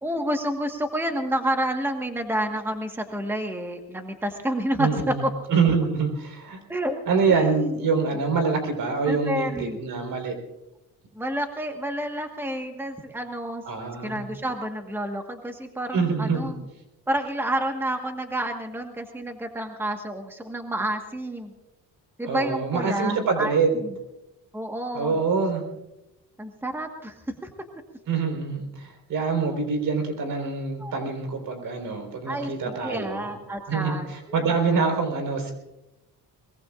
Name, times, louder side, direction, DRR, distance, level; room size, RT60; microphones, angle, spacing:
voice 1, 0.0-5.3 6.7-7.0 7.3-7.7 9.1-9.8 11.1-13.6 14.0-16.6 17.1-21.5 22.2-23.9 24.5-25.2 26.4-27.5 30.8-30.9 32.3-32.5 32.8-34.8, right 1 dB, 5° right, 4 dB, 1.4 m, -29 dB
voice 2, 4.8-5.2 5.5-6.6 7.1-10.3 13.7-14.2 15.9-16.5 22.3-23.7 24.9-25.6 28.1-33.3 33.7-35.5, right 4 dB, 70° right, 4 dB, 4.3 m, -25 dB
22.5 x 21.5 x 2.5 m, 0.92 s
cardioid pair, 110°, 35 cm